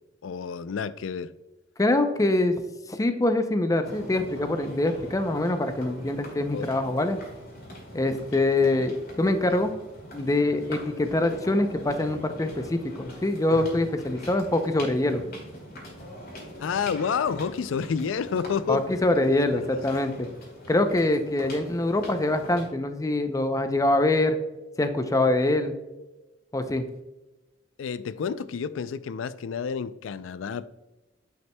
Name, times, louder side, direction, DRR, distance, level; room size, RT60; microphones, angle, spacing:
voice 1, 0.2-1.3 6.5-6.7 16.6-18.8 19.7-19.8 27.8-30.6, left 6 dB, 85° left, 0.4 m, -29 dB
voice 2, 1.8-2.6 2.9-7.2 7.9-9.7 10.1-15.2 18.7-20.3 20.7-24.4 24.8-25.7 26.5-26.9, left 2 dB, 15° left, 0.5 m, -24 dB
sound 1, 3.8-22.7, left 1 dB, 55° left, 2.3 m, -43 dB
9.2 x 5.7 x 2.2 m
head